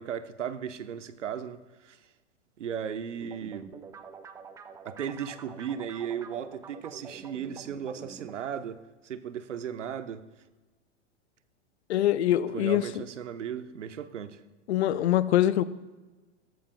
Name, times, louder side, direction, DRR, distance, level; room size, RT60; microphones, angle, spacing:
voice 1, 0.0-2.0 2.6-3.7 4.8-10.3 12.5-14.4, right 8 dB, 80° right, 0.9 m, -36 dB
sound 1, 3.2-8.3, right 6 dB, 10° right, 0.3 m, -46 dB
voice 2, 11.9-12.8 14.7-15.6, left 12 dB, 65° left, 0.7 m, -23 dB
16.5 x 14.0 x 2.3 m
hypercardioid pair, 105°, 36 cm